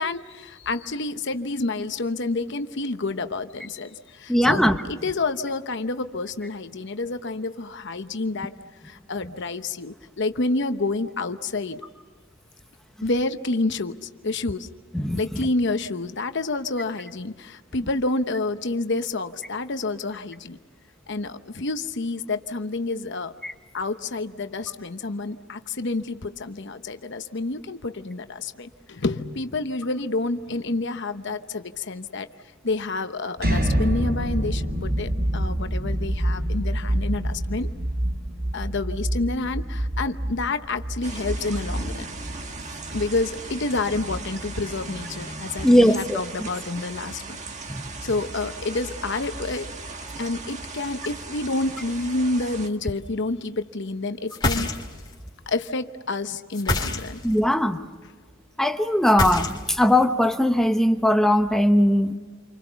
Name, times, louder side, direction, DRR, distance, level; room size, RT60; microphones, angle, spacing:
voice 1, 0.0-4.6 4.9-8.5 8.8-11.8 13.0-14.7 15.2-20.6 21.1-23.3 23.7-32.3 32.6-37.7 38.5-42.1 42.9-47.2 48.0-49.7 50.2-54.7 55.5-57.2, left 3 dB, 60° left, 9 dB, 1.0 m, -29 dB
voice 2, 4.3-4.8 14.9-15.2 23.4-23.5 45.6-46.2 47.7-47.9 57.2-57.8 58.6-62.1, left 1 dB, ahead, 7 dB, 0.9 m, -19 dB
sound 1, 33.4-45.2, right 1 dB, 50° right, 3.3 m, -27 dB
sound 2, 41.0-52.7, right 3 dB, 35° right, 1.6 m, -37 dB
sound 3, 54.3-55.1 56.5-57.4 59.0-59.9, left 2 dB, 20° left, 2.7 m, -26 dB
29.0 x 25.0 x 7.0 m, 1.5 s
head